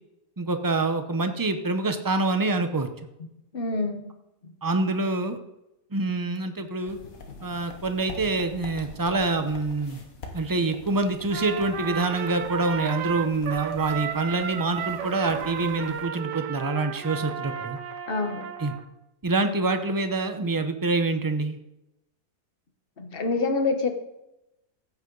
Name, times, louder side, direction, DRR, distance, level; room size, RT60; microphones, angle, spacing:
voice 1, 0.4-2.9 4.6-5.4 5.9-7.0 7.4-10.0 10.3-17.8 18.6-18.7 19.2-21.6, right 3 dB, 30° right, 8 dB, 0.4 m, -26 dB
voice 2, 3.5-4.0 18.1-18.5 23.0-23.9, left 3 dB, 40° left, 6 dB, 1.3 m, -26 dB
sound 1, 6.9-16.1, left 3 dB, 60° left, 1.8 m, -44 dB
Trumpet, 11.3-18.9, right 8 dB, 85° right, 1.5 m, -34 dB
14.5 x 8.2 x 3.9 m, 0.90 s
omnidirectional pair, 1.7 m